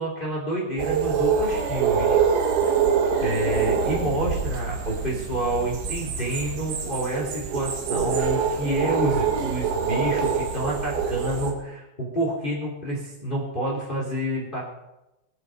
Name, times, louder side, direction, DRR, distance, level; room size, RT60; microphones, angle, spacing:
voice 1, 0.0-2.2 3.2-14.6, right 1 dB, 15° left, -5 dB, 2.9 m, -28 dB
sound 1, 0.8-11.5, right 6 dB, 85° right, 4.2 m, -25 dB
21.5 x 10.5 x 5.3 m, 0.95 s
omnidirectional pair, 5.2 m